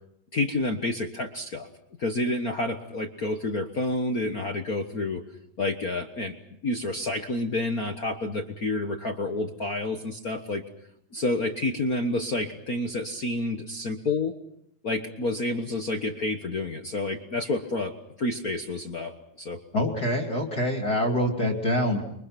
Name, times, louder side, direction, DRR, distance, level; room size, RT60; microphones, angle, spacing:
voice 1, 0.3-1.7 2.0-5.2 5.6-6.3 6.6-10.6 11.1-14.3 14.8-17.9 18.2-19.6, left 2 dB, 65° left, 5 dB, 0.8 m, -29 dB
voice 2, 19.7-22.0, left 1 dB, 30° left, 2 dB, 2.9 m, -25 dB
29.0 x 24.0 x 6.0 m, 0.74 s
omnidirectional pair, 3.9 m